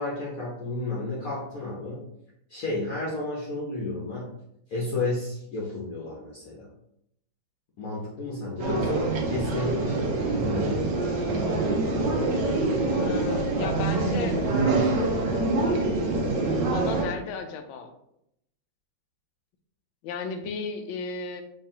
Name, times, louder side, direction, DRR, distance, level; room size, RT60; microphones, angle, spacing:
voice 1, 0.0-2.0 2.5-4.2 4.7-6.7 7.8-10.9 11.5-11.7, left 2 dB, 55° left, -5 dB, 1.1 m, -32 dB
sound 1, 8.6-17.1, right 2 dB, 70° right, 1.4 m, -25 dB
voice 2, 12.9-14.4 16.7-17.9 20.0-21.4, left 5 dB, 85° left, 6 dB, 1.4 m, -34 dB
4.7 x 3.3 x 2.8 m, 0.78 s
omnidirectional pair, 2.1 m